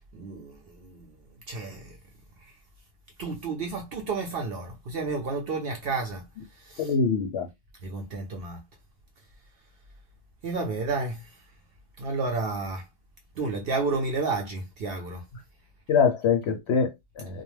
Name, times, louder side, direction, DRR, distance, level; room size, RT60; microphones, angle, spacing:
voice 1, 0.1-1.2 1.5-2.0 2.4-2.6 3.2-7.0 7.8-8.6 10.4-11.4 12.0-12.9 13.4-15.3, right 3 dB, 60° right, 0.6 m, -31 dB
voice 2, 6.8-7.5 15.9-17.4, left 6 dB, 65° left, 0.7 m, -24 dB
2.3 x 2.1 x 3.1 m
omnidirectional pair, 1.4 m